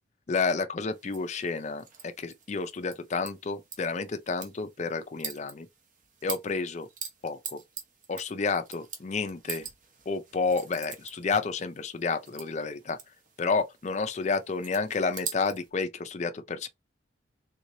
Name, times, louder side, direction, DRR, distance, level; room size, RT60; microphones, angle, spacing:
voice 1, 0.3-5.7 6.2-6.9 7.2-7.6 8.1-9.7 10.1-13.0 13.4-16.7, left 4 dB, 40° left, 0.4 m, -30 dB
sound 1, 0.9-15.7, right 7 dB, 45° right, 0.9 m, -44 dB
3.7 x 3.1 x 2.7 m
head